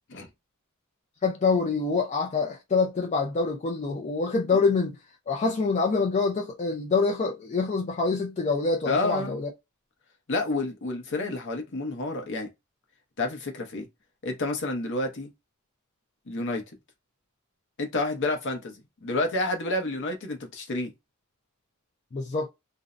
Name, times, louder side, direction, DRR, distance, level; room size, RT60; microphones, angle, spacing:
voice 1, 1.2-5.0 5.3-9.5 22.1-22.5, left 4 dB, 30° left, 0.4 m, -26 dB
voice 2, 8.9-9.4 10.3-12.5 13.2-13.9 14.2-15.3 16.3-16.6 17.8-20.9, left 2 dB, 55° left, 0.7 m, -29 dB
2.6 x 2.0 x 2.4 m
head